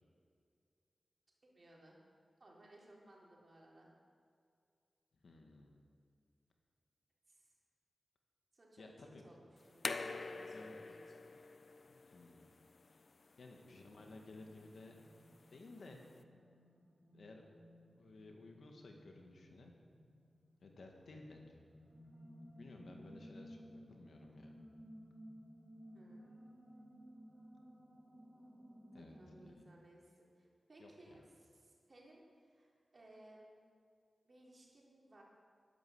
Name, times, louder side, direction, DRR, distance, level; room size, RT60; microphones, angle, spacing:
voice 1, 1.4-2.0 2.4-3.9 7.3-7.5 8.5-11.2 13.5-13.9 25.9-26.4 28.9-33.5 34.2-35.2, right 1 dB, 45° right, -3 dB, 4.2 m, -62 dB
voice 2, 5.2-5.8 8.8-9.2 10.4-10.8 11.9-12.5 13.4-14.9 15.5-16.0 17.1-17.6 18.0-19.7 20.6-21.6 22.6-23.6 23.9-24.5 28.9-29.2 29.5-29.6 30.8-31.2, left 2 dB, 75° left, 2 dB, 2.0 m, -56 dB
sound 1, 9.6-16.2, left 3 dB, 60° left, 0.7 m, -48 dB
sound 2, 13.8-29.5, equal, 20° right, 3.5 m, -58 dB
12.0 x 10.5 x 7.9 m, 2.3 s
cardioid pair, 60°, 0 cm